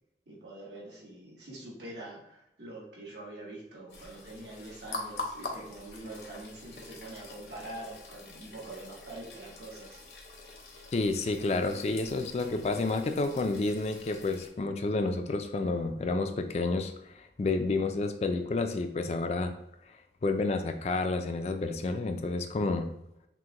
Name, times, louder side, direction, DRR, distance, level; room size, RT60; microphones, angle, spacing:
voice 1, 0.3-10.0, right 2 dB, 85° right, -4 dB, 1.5 m, -45 dB
sound 1, 3.9-14.5, left 3 dB, 70° left, 0.8 m, -45 dB
voice 2, 10.9-19.5 20.2-22.9, left 3 dB, 35° left, 7 dB, 0.3 m, -30 dB
6.0 x 2.1 x 2.9 m, 0.82 s
head